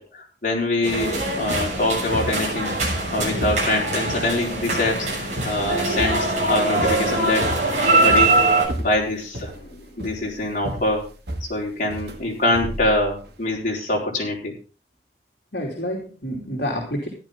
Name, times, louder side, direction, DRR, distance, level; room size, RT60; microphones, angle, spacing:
voice 1, 0.0-2.8 3.1-5.1 5.4-8.4 8.8-9.5 10.0-11.0 11.4-14.5, left 1 dB, 45° left, -2 dB, 4.3 m, -24 dB
sound 1, 0.8-8.7, right 2 dB, 45° right, 6.7 m, -22 dB
sound 2, 1.2-13.4, right 1 dB, 65° right, 2.3 m, -33 dB
voice 2, 9.5-9.9 15.5-17.1, equal, 65° left, -1 dB, 2.9 m, -30 dB
14.0 x 11.5 x 3.7 m, 0.35 s
head